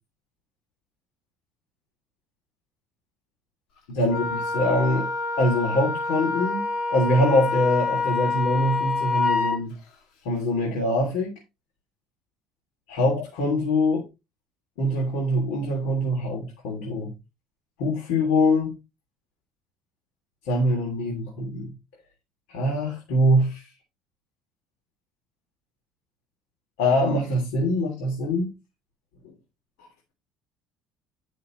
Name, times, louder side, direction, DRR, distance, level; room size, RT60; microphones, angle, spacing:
voice 1, 3.9-5.1 5.4-6.6 6.9-9.7 10.2-11.3 12.9-14.0 14.8-17.1 17.8-18.7 20.4-21.7 22.5-23.7 26.8-28.5 29.2-29.3, left 1 dB, 90° left, 3.0 m, -23 dB
Wind instrument woodwind instrument, 4.1-9.6, left 3 dB, 65° left, 2.3 m, -27 dB
10.5 x 6.6 x 3.1 m
cardioid pair, 155°, 0 cm